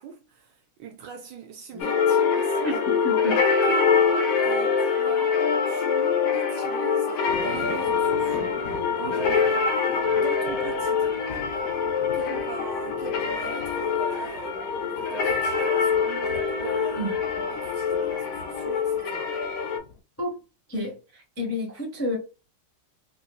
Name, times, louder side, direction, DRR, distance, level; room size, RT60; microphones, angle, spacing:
voice 1, 0.0-2.7 3.6-8.6 9.0-9.7 10.2-11.2 12.1-17.2 17.5-19.3, right 7 dB, 70° right, 1.1 m, -40 dB
sound 1, 1.8-19.8, left 5 dB, 80° left, 1.7 m, -24 dB
voice 2, 2.6-3.7 17.0-17.2 20.2-20.4 20.7-22.2, left 1 dB, 15° left, 0.4 m, -31 dB
sound 2, 7.2-20.0, left 5 dB, 60° left, 0.9 m, -44 dB
4.1 x 2.6 x 2.2 m
omnidirectional pair, 2.3 m